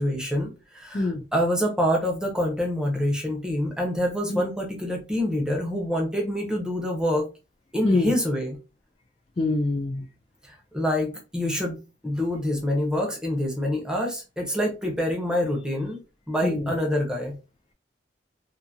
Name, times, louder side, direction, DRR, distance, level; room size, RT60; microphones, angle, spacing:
voice 1, 0.0-7.3 7.7-8.6 10.4-16.0 16.3-17.4, equal, 5° right, 0.7 m, -26 dB
voice 2, 9.4-10.0 14.9-15.0 16.4-16.7, left 2 dB, 35° left, 0.4 m, -25 dB
2.6 x 2.5 x 2.7 m
head